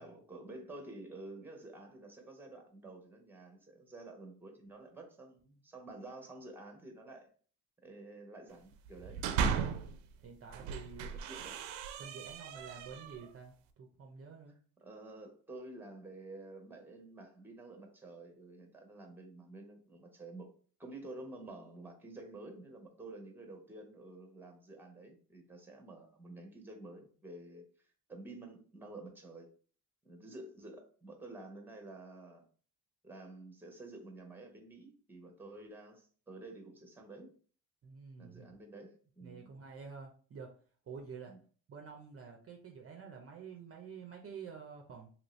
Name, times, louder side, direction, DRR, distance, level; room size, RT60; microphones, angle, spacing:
voice 1, 0.0-7.3 7.8-9.2 11.0-11.6 14.8-20.5 20.8-27.7 28.1-29.5 30.0-32.4 33.0-37.3 38.2-39.5 41.3-41.4, right 2 dB, 5° right, 3 dB, 0.8 m, -50 dB
sound 1, 8.9-10.0 10.5-13.3, right 6 dB, 80° right, 0.6 m, -36 dB
voice 2, 10.2-11.2 12.0-14.5 37.8-38.5 39.2-40.5 40.9-41.3 41.7-45.1, right 6 dB, 35° right, 1 dB, 0.6 m, -49 dB
2.9 x 2.7 x 3.1 m, 0.42 s
cardioid pair, 95°, 41 cm